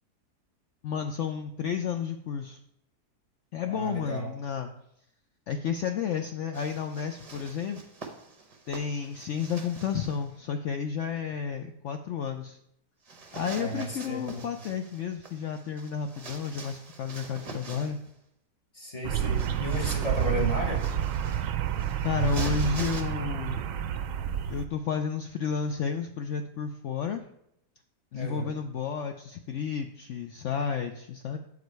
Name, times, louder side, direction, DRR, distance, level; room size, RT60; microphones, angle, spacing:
voice 1, 0.8-2.6 3.5-4.7 5.5-7.9 8.7-12.6 13.3-18.0 22.0-23.6 24.5-27.2 28.1-31.4, left 7 dB, 75° left, 6 dB, 0.7 m, -32 dB
voice 2, 3.6-4.3 13.5-14.4 18.7-20.9 28.1-28.5, equal, 25° left, 0 dB, 1.0 m, -33 dB
sound 1, 6.5-10.3 13.1-18.1 19.1-23.0, right 3 dB, 35° right, 0.6 m, -44 dB
sound 2, 19.0-24.7, right 10 dB, 70° right, 0.8 m, -29 dB
7.9 x 4.9 x 4.6 m, 0.77 s
omnidirectional pair, 1.8 m